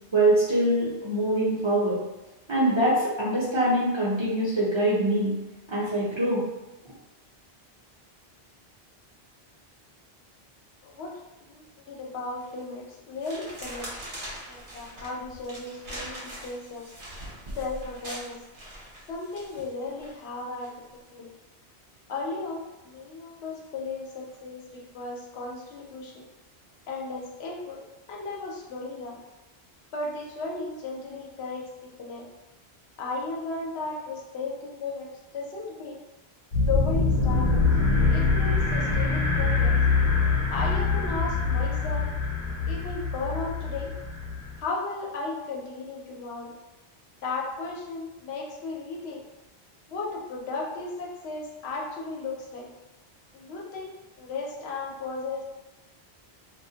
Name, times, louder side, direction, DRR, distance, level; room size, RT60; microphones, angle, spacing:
voice 1, 0.1-2.0 2.5-5.4 5.7-6.4, right 1 dB, 40° right, -8 dB, 0.5 m, -24 dB
voice 2, 10.8-13.9 14.5-16.9 17.6-18.4 19.1-20.7 21.1-21.3 22.1-26.3 26.9-27.8 28.1-29.2 29.9-32.3 33.0-35.1 35.3-36.0 36.5-37.6 38.1-39.8 40.5-42.1 42.7-43.9 44.6-46.5 47.2-49.2 49.9-52.7 53.3-53.9 54.2-55.4, left 3 dB, 85° left, -2 dB, 0.8 m, -35 dB
sound 1, 12.4-12.7 13.2-20.1 20.6-20.9, right 1 dB, 55° right, 0.9 m, -41 dB
sound 2, 36.5-44.6, left 4 dB, 55° left, 0.9 m, -24 dB
2.2 x 2.1 x 2.7 m, 1.0 s
omnidirectional pair, 1.1 m